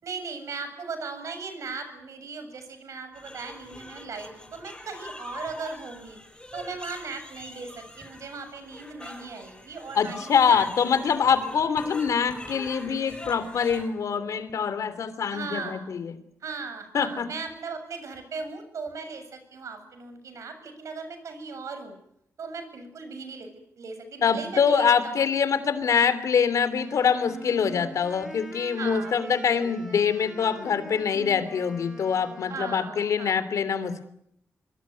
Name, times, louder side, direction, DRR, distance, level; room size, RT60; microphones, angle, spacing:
voice 1, 0.0-6.2 6.5-10.9 15.2-15.9 16.4-22.0 22.4-23.5 23.8-25.3 26.1-26.2 28.8-30.0 32.4-33.4, right 4 dB, 65° right, 8 dB, 7.5 m, -38 dB
sound 1, 3.1-13.9, left 1 dB, 15° left, 5.5 m, -43 dB
voice 2, 9.9-16.1 16.9-17.3 24.2-34.1, left 6 dB, 70° left, 13 dB, 3.2 m, -24 dB
Wind instrument woodwind instrument, 26.8-33.0, equal, 5° right, 6.9 m, -44 dB
26.0 x 23.5 x 9.5 m, 0.73 s
cardioid pair, 105°, 6 cm